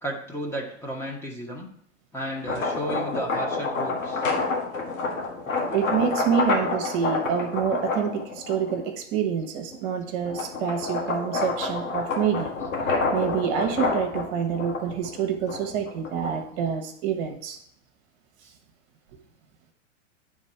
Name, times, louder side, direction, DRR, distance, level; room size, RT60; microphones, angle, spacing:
voice 1, 0.0-1.7 2.1-4.3 18.4-18.5, right 1 dB, 5° left, -1 dB, 1.1 m, -33 dB
sound 1, 2.3-8.9 9.4-16.6, left 3 dB, 90° left, 1.8 m, -28 dB
voice 2, 5.7-12.5 13.1-17.6, right 8 dB, 45° right, 4 dB, 1.2 m, -27 dB
9.6 x 3.7 x 4.4 m, 0.65 s
hypercardioid pair, 120°, 38 cm